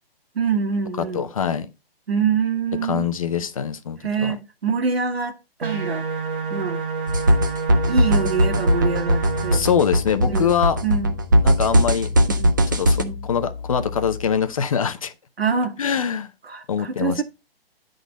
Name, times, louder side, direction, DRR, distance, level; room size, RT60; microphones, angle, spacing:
voice 1, 0.4-1.3 2.1-3.1 4.0-6.1 6.5-6.8 7.9-9.7 10.3-10.5 10.8-11.1 12.3-12.5 13.0-13.3 15.4-15.8 16.4-17.2, right 5 dB, 75° right, 1.9 m, -25 dB
voice 2, 1.1-1.7 2.8-4.3 9.5-10.8 11.4-12.1 12.7-15.1 15.8-16.3 16.7-17.2, left 7 dB, 35° left, 0.7 m, -23 dB
sound 1, 5.6-9.6, right 5 dB, 60° right, 2.2 m, -28 dB
sound 2, 7.1-13.0, equal, 20° right, 0.5 m, -19 dB
sound 3, 9.2-14.6, left 5 dB, 15° left, 1.7 m, -35 dB
10.5 x 3.9 x 5.1 m
hypercardioid pair, 165°, 30 cm